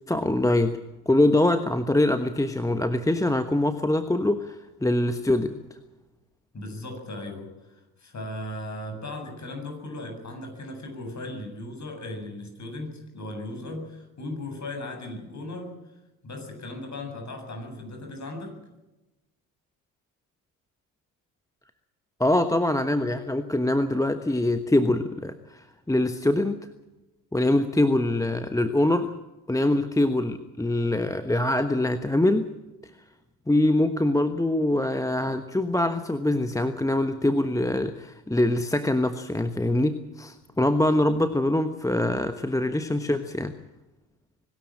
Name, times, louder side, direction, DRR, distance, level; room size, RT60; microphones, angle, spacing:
voice 1, 0.1-0.8 1.1-4.5 4.8-5.6 22.2-26.6 27.3-29.1 29.5-32.5 33.5-43.5, left 1 dB, 5° left, 10 dB, 1.2 m, -24 dB
voice 2, 6.5-15.8 16.2-18.6, left 1 dB, 35° left, 4 dB, 7.9 m, -37 dB
24.0 x 13.0 x 8.8 m, 1.0 s
hypercardioid pair, 55°, 48 cm